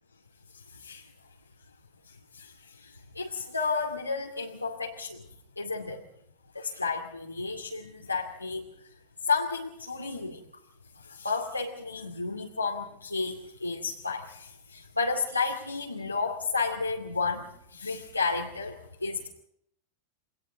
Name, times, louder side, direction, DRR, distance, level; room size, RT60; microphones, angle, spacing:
voice 1, 2.8-5.2 5.6-6.0 6.5-8.6 9.3-10.4 11.1-19.3, left 4 dB, 85° left, -1 dB, 2.4 m, -32 dB
29.5 x 24.5 x 3.9 m, 0.72 s
figure-of-eight pair, 90°, 0 cm